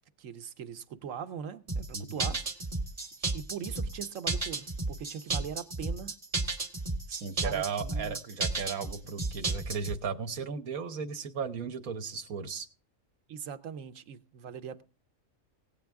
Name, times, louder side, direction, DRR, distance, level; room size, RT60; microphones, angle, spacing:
voice 1, 0.2-2.4 3.3-6.2 7.4-8.2 13.3-14.8, right 8 dB, 70° right, 1.2 m, -41 dB
sound 1, 1.7-10.0, right 3 dB, 25° right, 1.2 m, -33 dB
voice 2, 1.9-2.3 7.1-12.7, right 5 dB, 85° right, 1.5 m, -36 dB
17.5 x 8.7 x 3.5 m
omnidirectional pair, 1.4 m